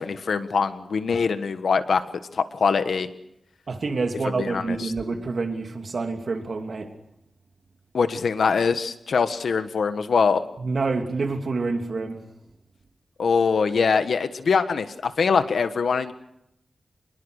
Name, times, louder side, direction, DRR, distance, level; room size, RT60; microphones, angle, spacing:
voice 1, 0.0-2.0 2.3-3.1 4.4-4.9 7.9-10.4 13.2-16.1, left 5 dB, 85° left, 1.4 m, -23 dB
voice 2, 3.7-6.9 10.6-12.2, right 3 dB, 60° right, 2.8 m, -27 dB
26.5 x 21.0 x 6.6 m
wide cardioid pair, 95°, 0 cm